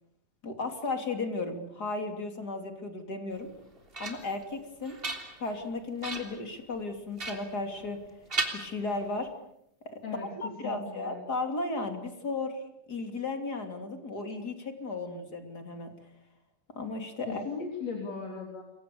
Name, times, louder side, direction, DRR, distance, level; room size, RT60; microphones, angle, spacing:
voice 1, 0.4-3.5 4.0-5.0 5.4-8.0 8.5-9.3 9.8-10.0 10.4-12.6 12.9-15.9 16.8-17.4, left 3 dB, 30° left, 6 dB, 3.4 m, -35 dB
sound 1, 3.4-4.4 4.8-5.6 6.0-6.4 7.2-8.0 8.3-9.3, right 3 dB, 15° right, 3.1 m, -36 dB
voice 2, 10.0-11.2 17.3-18.6, left 5 dB, 55° left, 1 dB, 4.8 m, -38 dB
29.0 x 24.0 x 7.1 m, 0.76 s
omnidirectional pair, 3.6 m